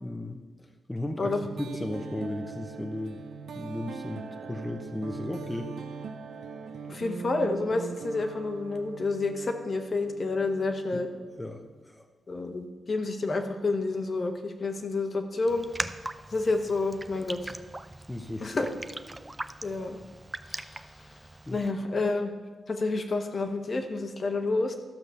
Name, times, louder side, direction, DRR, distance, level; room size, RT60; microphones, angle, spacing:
voice 1, 0.0-3.2 3.5-5.7 10.9-11.0 11.4-12.1 18.1-18.6 21.5-21.6, left 1 dB, 10° left, 4 dB, 0.8 m, -36 dB
sound 1, 1.2-11.8, right 5 dB, 80° right, 0.6 m, -41 dB
voice 2, 6.9-11.1 12.3-15.7 16.3-17.5 18.4-18.7 19.6-20.0 20.5-20.8 21.5-22.3 22.7-24.8, left 3 dB, 50° left, 5 dB, 1.2 m, -29 dB
Raindrop, 15.5-21.7, right 1 dB, 15° right, 0.5 m, -40 dB
12.5 x 5.9 x 6.8 m, 1.3 s
cardioid pair, 80°, 0 cm